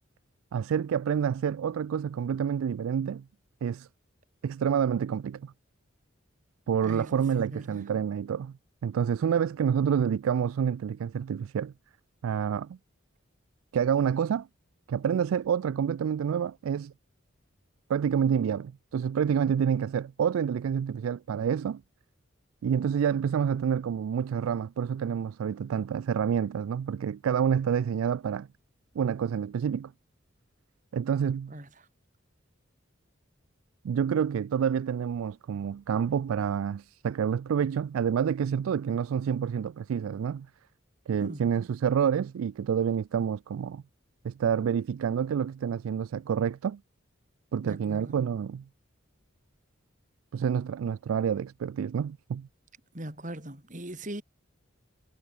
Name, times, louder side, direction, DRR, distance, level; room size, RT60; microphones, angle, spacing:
voice 1, 0.5-3.2 3.6-3.9 4.4-5.5 6.7-8.5 8.8-11.7 12.2-12.8 13.7-14.5 14.9-16.9 17.9-21.8 22.6-28.5 29.0-29.9 30.9-31.5 33.8-40.5 41.1-43.8 44.2-46.8 47.5-48.6 50.3-52.5, right 7 dB, 90° right, 0.3 m, -28 dB
voice 2, 6.8-7.8 31.5-31.9 41.2-41.5 47.6-48.2 52.9-54.2, right 1 dB, 40° right, 3.0 m, -40 dB
head